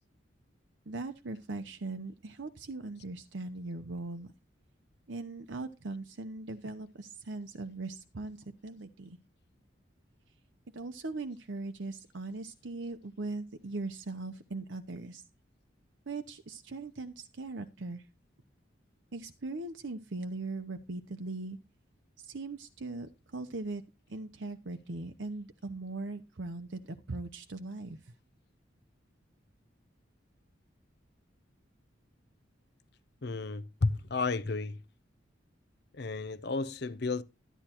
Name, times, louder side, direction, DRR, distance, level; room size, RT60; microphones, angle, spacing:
voice 1, 0.9-4.3 5.1-9.2 10.7-15.2 16.1-18.1 19.1-21.6 22.2-23.8 24.1-28.1, right 2 dB, 80° right, 0.8 m, -40 dB
voice 2, 33.2-34.8 35.9-37.2, left 3 dB, 60° left, 0.7 m, -32 dB
13.0 x 10.0 x 3.0 m
head